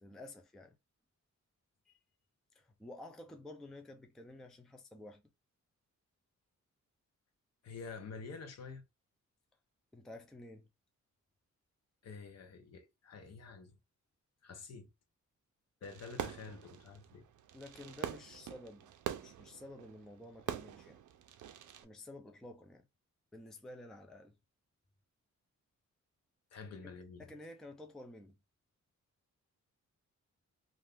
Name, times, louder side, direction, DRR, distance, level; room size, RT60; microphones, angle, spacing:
voice 1, 0.0-0.8 1.9-2.0 2.5-5.2 9.9-10.7 17.5-21.0 21.8-22.9 23.3-24.4 27.2-28.4, left 1 dB, ahead, 0.3 m, -51 dB
voice 2, 7.6-8.9 12.0-13.8 14.4-14.9 15.8-17.3 26.5-27.2, left 4 dB, 60° left, 0.7 m, -48 dB
Fireworks, 15.8-21.8, right 10 dB, 80° right, 0.5 m, -44 dB
2.5 x 2.3 x 3.4 m
wide cardioid pair, 160°, 30 cm